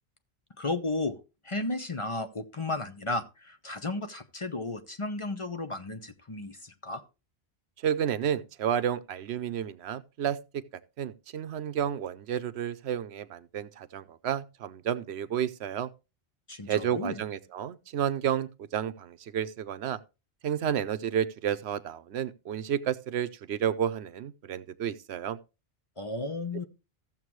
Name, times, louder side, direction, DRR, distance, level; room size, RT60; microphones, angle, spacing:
voice 1, 0.6-1.2 1.4-7.0 16.5-17.2 26.0-26.7, left 2 dB, 30° left, 0.8 m, -34 dB
voice 2, 7.8-10.6 11.0-15.9 16.7-20.0 20.4-25.4, right 9 dB, 80° right, 0.9 m, -31 dB
14.5 x 7.3 x 3.1 m
omnidirectional pair, 1.1 m